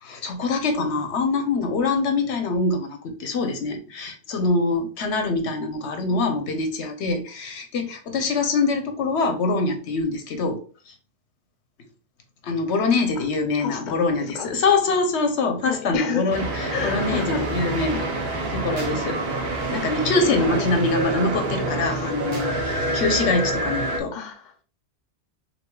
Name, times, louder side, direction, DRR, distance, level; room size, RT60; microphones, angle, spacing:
voice 1, 0.0-10.6 12.4-16.5 16.8-18.1 18.5-19.2 19.7-24.1, left 3 dB, 85° left, 1.1 m, -24 dB
voice 2, 6.1-6.4 12.9-13.3 13.6-14.5 15.6-16.3 16.7-17.5 20.3-20.5 21.6-22.3 24.1-24.5, left 7 dB, 50° left, 0.8 m, -32 dB
sound 1, 16.3-24.0, right 2 dB, 65° right, 1.2 m, -27 dB
6.0 x 2.8 x 2.3 m
omnidirectional pair, 1.1 m